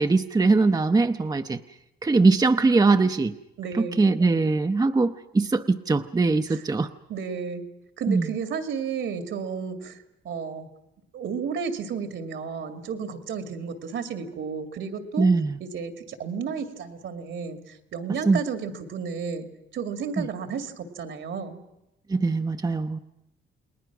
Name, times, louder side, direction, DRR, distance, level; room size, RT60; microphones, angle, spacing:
voice 1, 0.0-1.6 2.0-3.3 3.8-6.9 8.1-8.3 15.2-15.6 18.3-18.4 20.2-20.3 22.1-23.0, right 3 dB, 20° right, 8 dB, 0.7 m, -21 dB
voice 2, 3.6-4.0 6.5-6.6 7.1-7.6 8.0-10.0 10.2-10.7 11.1-15.3 15.6-19.5 19.7-21.6, right 6 dB, 70° right, 7 dB, 2.3 m, -32 dB
29.5 x 20.0 x 6.1 m, 0.90 s
cardioid pair, 95°, 20 cm